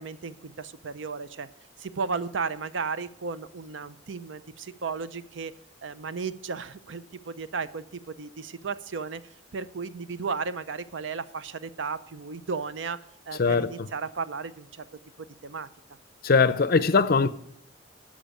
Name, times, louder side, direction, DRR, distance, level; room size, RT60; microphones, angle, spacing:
voice 1, 0.0-1.5 1.8-5.5 5.8-9.2 9.5-14.8 15.2-15.7, right 5 dB, 80° right, 0.6 m, -34 dB
voice 2, 13.4-13.7 16.2-17.3, left 4 dB, 50° left, 0.6 m, -21 dB
12.5 x 5.1 x 8.8 m
head